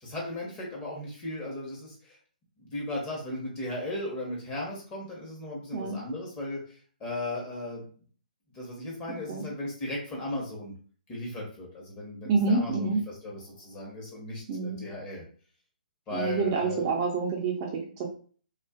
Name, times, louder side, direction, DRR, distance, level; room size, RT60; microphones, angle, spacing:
voice 1, 0.0-2.2 2.6-7.8 8.5-10.7 11.1-15.3 16.1-16.9, left 1 dB, 20° left, -3 dB, 0.9 m, -36 dB
voice 2, 12.2-13.0 14.5-14.8 16.1-18.1, right 4 dB, 30° right, -1 dB, 0.4 m, -27 dB
2.4 x 2.3 x 2.3 m, 0.43 s
hypercardioid pair, 145°, 5 cm